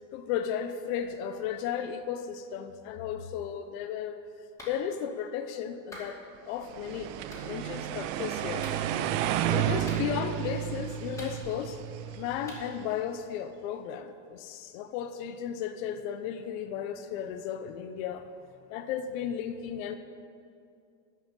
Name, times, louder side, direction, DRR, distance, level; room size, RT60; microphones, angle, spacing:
voice 1, 0.1-4.2 4.7-6.2 6.4-7.1 7.4-8.7 9.5-11.8 12.2-18.3 18.7-20.0, left 8 dB, 80° left, 8 dB, 0.9 m, -34 dB
Clapping, 4.6-4.8 5.9-6.1 7.3-7.5 8.6-8.8 9.9-10.3 11.2-11.7 12.5-12.6, left 1 dB, 10° left, 2.5 m, -45 dB
sound 1, 6.7-12.8, right 11 dB, 75° right, 0.7 m, -32 dB
13.5 x 5.7 x 9.0 m, 2.4 s
cardioid pair, 165°, 40 cm